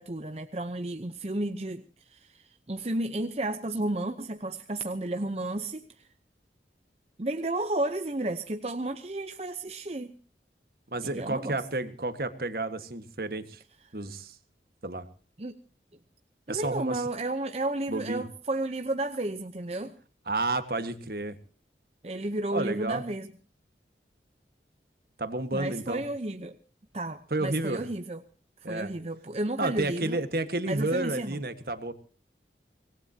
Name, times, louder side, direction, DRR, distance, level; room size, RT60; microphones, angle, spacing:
voice 1, 0.0-6.1 7.2-10.1 11.1-11.6 15.4-15.6 16.5-19.9 22.0-23.3 25.5-26.6 26.9-28.2 28.7-30.2 30.7-31.4, right 2 dB, 35° right, 7 dB, 0.8 m, -32 dB
voice 2, 10.9-13.6 13.9-14.4 14.8-15.1 16.5-17.0 17.9-18.2 20.3-21.4 22.5-23.0 25.2-26.0 27.3-27.9 28.6-28.9 29.6-31.9, right 2 dB, 55° right, 10 dB, 1.6 m, -31 dB
25.0 x 19.0 x 2.9 m, 0.37 s
head